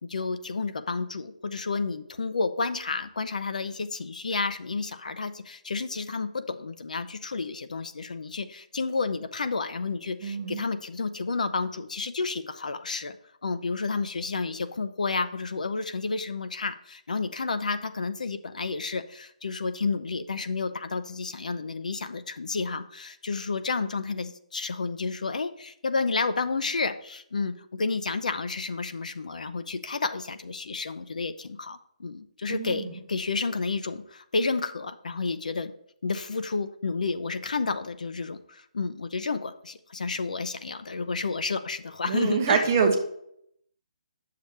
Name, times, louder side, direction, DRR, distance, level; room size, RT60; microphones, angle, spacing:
voice 1, 0.0-13.2 13.4-35.7 36.0-42.6, left 4 dB, 70° left, 11 dB, 0.6 m, -31 dB
voice 2, 10.2-10.6 32.5-32.9 42.1-43.0, right 5 dB, 20° right, 4 dB, 0.8 m, -25 dB
9.4 x 6.8 x 3.3 m, 0.73 s
hypercardioid pair, 180°, 4 cm